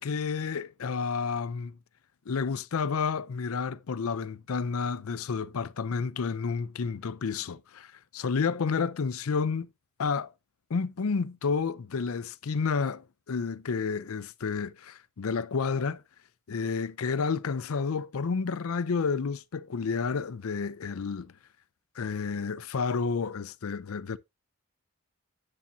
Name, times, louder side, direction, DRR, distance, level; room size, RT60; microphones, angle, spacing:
voice 1, 0.0-1.8 2.3-9.7 10.0-10.3 10.7-16.0 16.5-21.3 22.0-24.2, left 5 dB, 85° left, 0.5 m, -30 dB
9.8 x 7.2 x 2.7 m
head